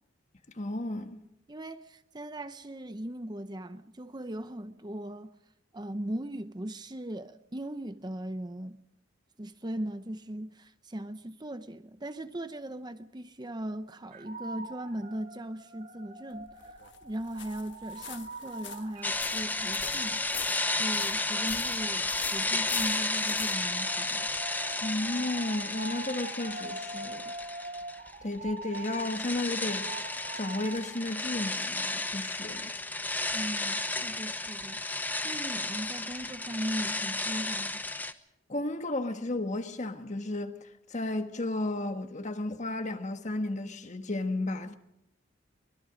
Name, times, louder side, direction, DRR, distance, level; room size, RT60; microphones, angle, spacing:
voice 1, 0.5-1.2 24.8-27.2 28.2-29.9 30.3-32.7 38.5-44.8, left 2 dB, 35° left, 1.5 m, -33 dB
voice 2, 1.5-5.3 5.7-8.8 9.4-16.6 17.0-20.2 20.7-24.3 33.3-37.8, right 1 dB, 20° right, 0.7 m, -38 dB
sound 1, 14.1-31.4, right 2 dB, 45° right, 3.9 m, -45 dB
sound 2, 16.3-24.5, left 10 dB, 60° left, 1.5 m, -44 dB
sound 3, 19.0-28.1 28.4-38.1, left 2 dB, 10° left, 0.8 m, -33 dB
24.0 x 21.0 x 5.1 m
head